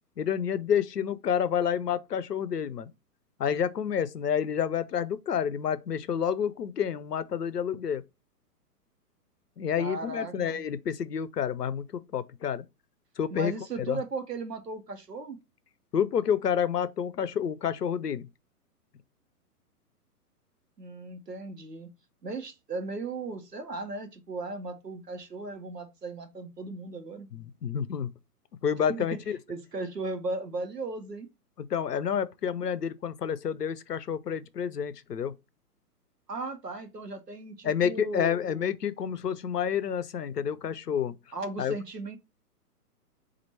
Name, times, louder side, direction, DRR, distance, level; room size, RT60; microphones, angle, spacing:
voice 1, 0.2-2.9 3.4-8.0 9.6-12.6 13.2-13.5 13.8-14.0 15.9-18.2 27.3-28.1 28.6-29.4 31.6-35.3 37.6-41.2 41.6-41.7, left 8 dB, 80° left, 0.6 m, -29 dB
voice 2, 9.8-10.6 13.3-15.4 20.8-21.9 22.2-27.3 28.9-29.2 29.5-31.3 36.3-38.4 41.3-42.2, right 3 dB, 85° right, 1.0 m, -36 dB
4.3 x 2.6 x 4.1 m
figure-of-eight pair, 120°, 47 cm